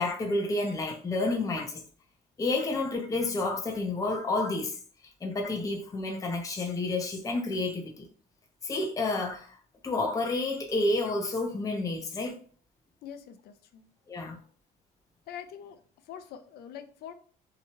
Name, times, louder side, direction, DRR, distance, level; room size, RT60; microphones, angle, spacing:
voice 1, 0.0-1.8 2.4-4.8 5.2-8.1 8.6-9.6 9.8-12.4 14.1-14.4, left 2 dB, 20° left, 0.6 m, -30 dB
voice 2, 13.0-13.9 15.3-15.8 16.1-17.1, left 9 dB, 70° left, 0.5 m, -44 dB
2.8 x 2.2 x 2.9 m
cardioid pair, 110°, 17 cm